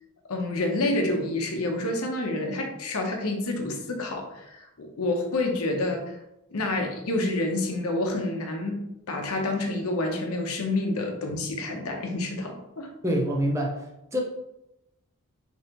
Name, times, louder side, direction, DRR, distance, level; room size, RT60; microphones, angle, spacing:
voice 1, 0.3-6.1 6.5-12.9, left 2 dB, 85° left, 2 dB, 0.8 m, -28 dB
voice 2, 13.0-13.8 14.1-14.2, equal, 15° right, 0 dB, 0.6 m, -25 dB
5.5 x 2.9 x 3.0 m, 0.89 s
head